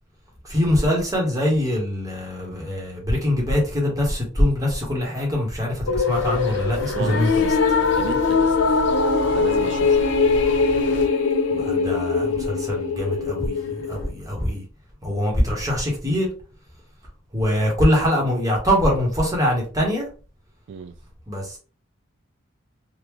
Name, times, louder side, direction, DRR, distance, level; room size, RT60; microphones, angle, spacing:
voice 1, 0.4-7.5 11.5-14.6 15.0-16.3 17.3-20.1 21.3-21.6, equal, 20° right, 1.2 m, -23 dB
sound 1, 5.9-14.1, left 4 dB, 85° left, 0.5 m, -21 dB
sound 2, 6.1-11.1, equal, 60° left, 0.9 m, -35 dB
voice 2, 6.9-7.3 8.0-8.6 9.3-10.1 20.7-20.9, right 6 dB, 60° right, 0.3 m, -32 dB
3.6 x 2.4 x 3.1 m
head